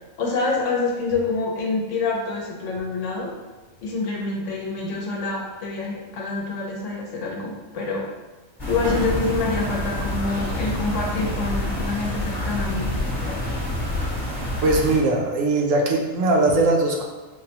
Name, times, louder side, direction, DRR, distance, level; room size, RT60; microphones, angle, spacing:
voice 1, 0.2-3.3 3.8-8.1 8.7-12.9, left 3 dB, 70° left, -1 dB, 1.0 m, -26 dB
sound 1, 8.6-15.0, left 1 dB, 20° left, 0.9 m, -27 dB
voice 2, 14.6-17.0, right 2 dB, 75° right, 0 dB, 1.0 m, -20 dB
5.3 x 2.1 x 2.8 m, 1.2 s
omnidirectional pair, 1.4 m